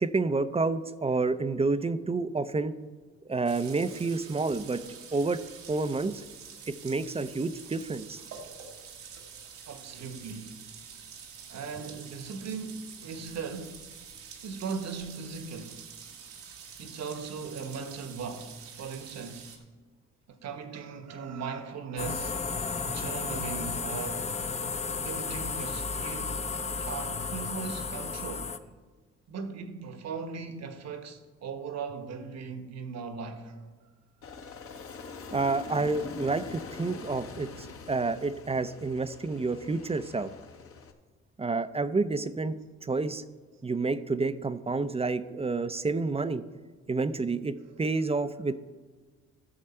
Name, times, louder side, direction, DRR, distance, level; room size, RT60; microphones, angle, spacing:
voice 1, 0.0-2.7 3.3-4.8 5.1-5.4 5.7-6.2 6.7-8.2 35.3-40.3 41.4-43.2 43.6-46.4 46.9-48.5, right 3 dB, 20° right, 0.5 m, -29 dB
sound 1, 3.5-19.6, right 6 dB, 85° right, 1.6 m, -47 dB
voice 2, 9.7-10.6 11.5-13.8 14.4-15.8 16.8-19.5 20.3-22.6 22.8-24.3 24.9-26.5 26.8-28.5 29.3-33.7, right 5 dB, 60° right, 1.3 m, -38 dB
sound 2, 22.0-28.6, left 4 dB, 20° left, 0.7 m, -33 dB
Aircraft, 34.2-40.9, left 4 dB, 50° left, 1.1 m, -43 dB
14.0 x 6.5 x 4.4 m
supercardioid pair, 65°, 30 cm